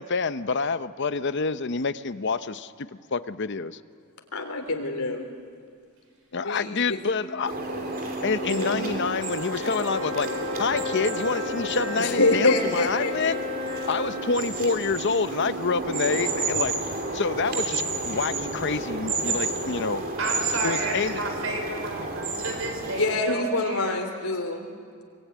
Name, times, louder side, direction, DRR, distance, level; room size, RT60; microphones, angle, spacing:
voice 1, 0.0-3.8 6.3-7.5 8.2-10.3 10.6-13.4 13.9-16.8 17.1-20.0 20.6-21.2, left 4 dB, 55° left, 13 dB, 0.8 m, -27 dB
voice 2, 4.3-5.2 6.4-7.0 8.4-8.9 12.0-13.4 22.9-24.7, left 2 dB, 80° left, 4 dB, 3.4 m, -26 dB
sound 1, 7.1-16.5, left 2 dB, 80° right, 6.3 m, -36 dB
sound 2, 7.5-23.2, right 3 dB, 40° right, 3.2 m, -31 dB
voice 3, 19.9-24.0, right 2 dB, 60° right, 4 dB, 4.5 m, -32 dB
23.5 x 23.5 x 9.4 m, 2.1 s
head